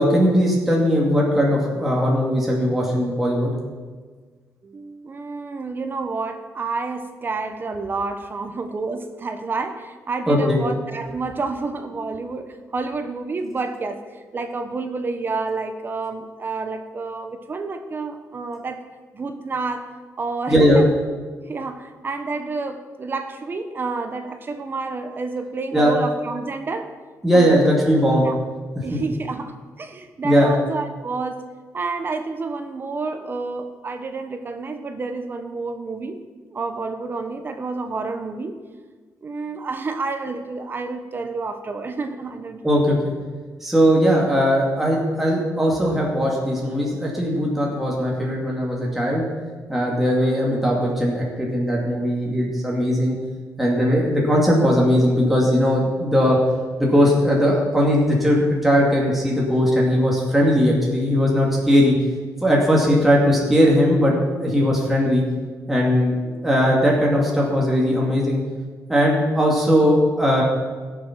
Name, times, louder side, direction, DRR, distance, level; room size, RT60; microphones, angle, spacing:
voice 1, 0.0-3.5 10.3-10.6 20.5-20.8 25.7-26.0 27.2-28.3 28.9-29.0 30.2-30.5 42.6-43.1 43.6-49.2 49.7-53.2 53.6-56.4 56.8-61.9 62.4-65.2 65.7-68.4 68.9-70.4, equal, 5° right, -4 dB, 2.3 m, -19 dB
voice 2, 4.6-18.9 19.1-19.9 20.2-20.9 21.5-26.9 27.3-27.7 28.2-28.4 28.8-31.5 31.7-36.2 36.5-38.5 39.2-43.0, right 3 dB, 35° right, 7 dB, 1.1 m, -29 dB
16.5 x 7.4 x 5.9 m, 1.4 s
cardioid pair, 135°, 6 cm